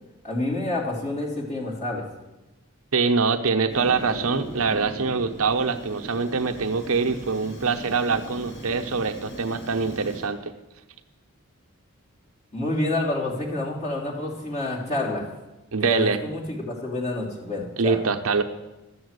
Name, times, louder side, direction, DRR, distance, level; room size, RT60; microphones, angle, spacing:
voice 1, 0.2-2.0 12.5-15.3 15.8-18.0, left 2 dB, 30° left, -3 dB, 3.0 m, -28 dB
voice 2, 2.9-10.5 15.7-16.2 17.8-18.4, right 4 dB, 75° right, 6 dB, 0.9 m, -24 dB
Fire, 3.7-10.3, right 1 dB, 50° left, 2.2 m, -39 dB
13.0 x 7.6 x 8.0 m, 1.0 s
head